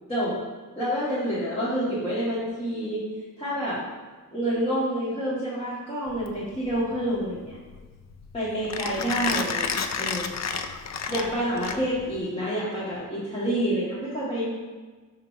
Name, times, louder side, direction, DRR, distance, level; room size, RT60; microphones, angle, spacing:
voice 1, 0.1-0.4 0.8-3.0 3.4-3.8 4.3-7.6 8.3-10.3 11.1-14.5, equal, 20° left, -11 dB, 1.6 m, -28 dB
Mechanisms, 6.1-12.2, left 6 dB, 60° left, 0.5 m, -31 dB
7.5 x 3.0 x 5.7 m, 1.3 s
wide cardioid pair, 160°, 31 cm